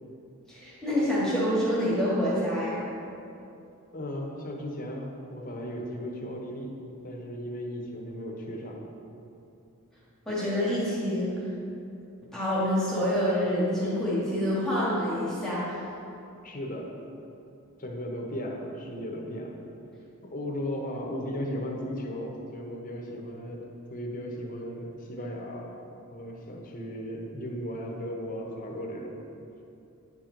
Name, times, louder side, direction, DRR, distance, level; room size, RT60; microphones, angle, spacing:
voice 1, 0.5-2.8 10.3-11.4 12.3-15.7, equal, 5° left, -9 dB, 1.5 m, -27 dB
voice 2, 3.9-6.7 7.0-8.8 16.4-16.9 17.8-19.5 20.2-23.6 23.9-25.7 26.1-29.1, equal, 40° left, 0 dB, 1.0 m, -36 dB
10.0 x 4.5 x 3.9 m, 2.7 s
head